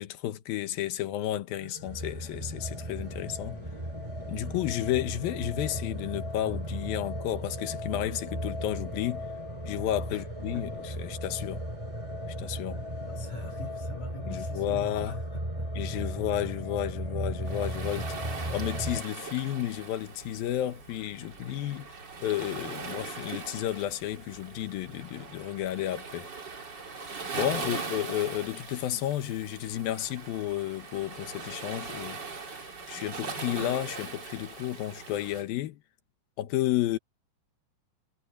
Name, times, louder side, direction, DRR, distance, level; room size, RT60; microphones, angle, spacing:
voice 1, 0.0-3.6 4.3-9.2 9.7-11.6 12.4-12.8 14.3-15.2 15.8-18.2 18.5-21.9 22.2-26.3 27.3-35.8 36.4-37.0, left 13 dB, 90° left, 2.9 m, -32 dB
sound 1, 1.6-19.0, equal, 10° right, 2.6 m, -36 dB
sound 2, 1.8-13.7, left 2 dB, 30° left, 6.5 m, -53 dB
voice 2, 13.0-15.7 16.1-16.2 27.6-27.9, left 2 dB, 55° left, 6.1 m, -44 dB
Waves surf, 17.5-35.4, right 4 dB, 30° right, 3.1 m, -40 dB
omnidirectional pair, 4.0 m